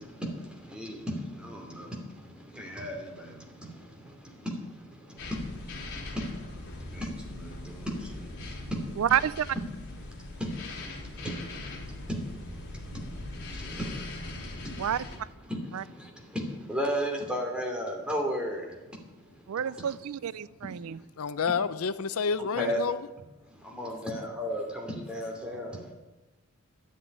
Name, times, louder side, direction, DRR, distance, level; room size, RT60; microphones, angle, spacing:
voice 1, 0.0-9.0 10.0-14.9 15.5-19.6 20.6-20.7 21.0-21.1 22.6-22.8 23.5-25.9, equal, 5° right, 2.8 m, -36 dB
sound 1, 5.2-15.2, left 2 dB, 55° left, 3.7 m, -41 dB
voice 2, 9.0-9.5 14.8-15.0 15.7-15.8 19.5-21.0, right 9 dB, 80° right, 0.4 m, -29 dB
voice 3, 21.2-23.0, left 6 dB, 80° left, 0.6 m, -29 dB
12.0 x 7.5 x 9.8 m
head